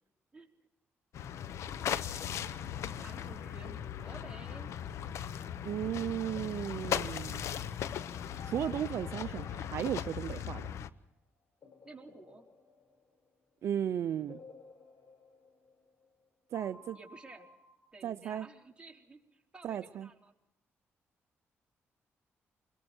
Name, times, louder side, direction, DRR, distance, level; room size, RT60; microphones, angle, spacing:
sound 1, 1.1-10.9, left 9 dB, 75° left, 0.9 m, -38 dB
voice 1, 3.0-4.7 11.8-12.4 16.9-17.5 17.9-20.3, right 3 dB, 20° right, 0 dB, 4.3 m, -52 dB
sound 2, 5.2-6.5 8.3-10.9 11.6-13.6 14.3-16.2 16.5-17.9, left 3 dB, 55° left, 7.2 m, -56 dB
voice 2, 5.6-7.5 8.5-10.6 13.6-14.4 16.5-17.0 18.0-18.5 19.6-20.1, right 10 dB, 70° right, 11 dB, 0.6 m, -35 dB
28.5 x 21.5 x 4.5 m, 0.86 s
cardioid pair, 75°, 5 cm